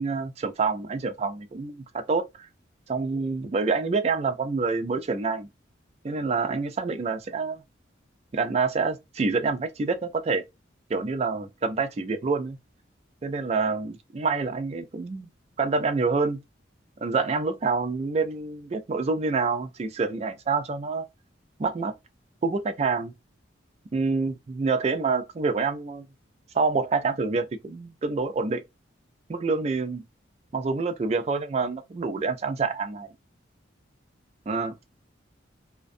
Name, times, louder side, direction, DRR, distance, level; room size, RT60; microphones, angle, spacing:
voice 1, 0.0-2.5 2.9-5.5 6.0-7.6 8.3-10.4 10.9-12.6 13.2-15.3 15.6-16.4 17.0-21.1 21.6-21.9 22.4-23.1 23.9-26.1 26.5-28.6 29.3-30.0 30.5-33.1 34.5-34.8, right 4 dB, 35° right, 0.3 m, -27 dB
2.5 x 2.1 x 2.5 m
head